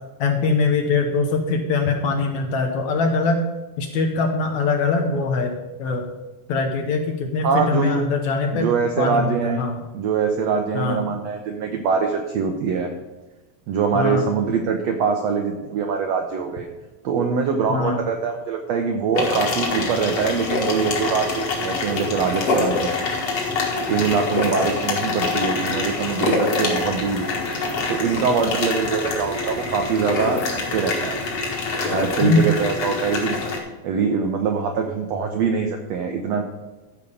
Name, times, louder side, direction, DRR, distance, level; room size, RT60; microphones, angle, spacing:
voice 1, 0.2-3.4 3.8-6.1 6.5-8.7 9.0-9.8 10.7-11.0 13.9-14.3 17.7-18.1 32.2-32.4, left 4 dB, 65° left, 4 dB, 2.0 m, -22 dB
voice 2, 7.4-8.0 8.5-9.6 9.9-12.9 13.7-16.7 17.0-23.0 23.9-27.4 27.9-31.2 31.8-33.4 33.8-36.4, right 5 dB, 75° right, 4 dB, 1.5 m, -23 dB
sound 1, 19.1-33.6, left 3 dB, 45° left, 2.7 m, -25 dB
13.0 x 5.1 x 6.9 m, 1.1 s
omnidirectional pair, 4.1 m